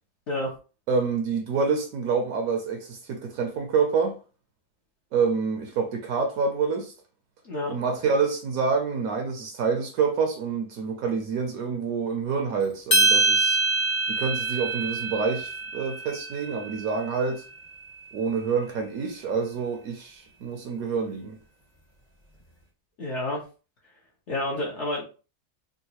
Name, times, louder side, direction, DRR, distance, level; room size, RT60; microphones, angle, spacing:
voice 1, 0.9-4.2 5.1-6.9 7.7-13.6 14.1-17.4 18.1-21.4, right 5 dB, 70° right, 1.0 m, -27 dB
sound 1, 12.9-17.3, right 2 dB, 35° left, 0.4 m, -25 dB
voice 2, 23.0-23.4 24.3-25.0, left 1 dB, 55° left, 0.9 m, -29 dB
3.7 x 2.3 x 2.8 m
omnidirectional pair, 1.7 m